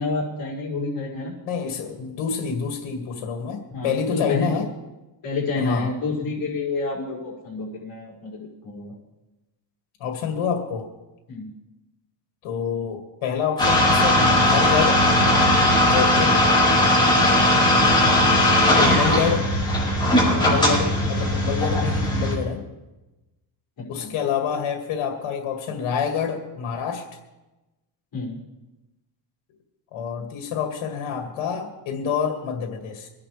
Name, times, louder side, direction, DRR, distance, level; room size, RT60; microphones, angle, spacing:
voice 1, 0.0-1.4 3.7-4.6 5.2-8.9 11.3-11.5 18.5-18.7 23.8-24.1 28.1-28.4, left 3 dB, 45° left, -5 dB, 5.8 m, -29 dB
voice 2, 1.4-4.7 5.6-5.9 10.0-10.9 12.4-15.0 15.8-16.4 18.8-19.5 20.3-22.6 23.9-27.1 29.9-33.1, left 7 dB, 80° left, 3 dB, 2.2 m, -27 dB
sound 1, 13.6-22.3, left 1 dB, 10° left, 5.4 m, -18 dB
24.0 x 11.0 x 3.4 m, 1.0 s
cardioid pair, 130°, 46 cm